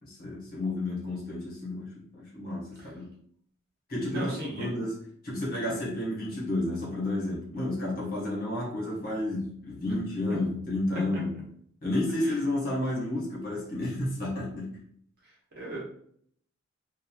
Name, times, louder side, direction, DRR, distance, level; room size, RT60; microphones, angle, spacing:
voice 1, 0.0-3.1 3.9-5.0 5.2-11.4 11.8-14.8, left 1 dB, 45° left, -6 dB, 1.1 m, -31 dB
voice 2, 4.1-4.7 10.3-10.4 12.2-12.4 15.6-15.8, right 1 dB, 50° right, -4 dB, 1.0 m, -36 dB
3.0 x 2.4 x 2.3 m, 0.63 s
head